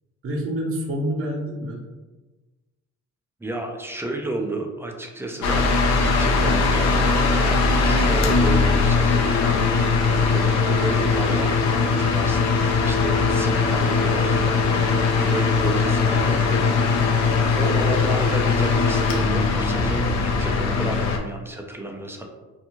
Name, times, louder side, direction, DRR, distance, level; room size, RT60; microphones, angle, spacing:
voice 1, 0.2-1.8 16.2-17.5, right 1 dB, 45° right, -2 dB, 0.7 m, -29 dB
voice 2, 3.4-5.7 6.0-17.1 17.5-22.3, right 2 dB, 10° right, 2 dB, 0.4 m, -32 dB
sound 1, 5.4-21.2, left 4 dB, 65° left, 0.5 m, -20 dB
2.5 x 2.4 x 2.9 m, 1.2 s
cardioid pair, 90°, 30 cm